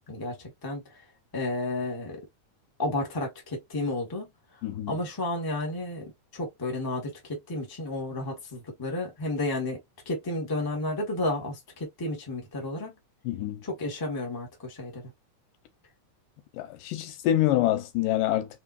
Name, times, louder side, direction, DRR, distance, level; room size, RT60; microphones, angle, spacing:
voice 1, 1.3-2.2 2.8-4.2 4.9-6.0 6.3-9.8 10.0-12.9 13.6-15.0, left 2 dB, 15° left, 0.7 m, -32 dB
voice 2, 4.6-4.9 13.3-13.6 16.5-18.5, left 13 dB, 90° left, 2.4 m, -26 dB
4.5 x 3.5 x 2.6 m
omnidirectional pair, 3.7 m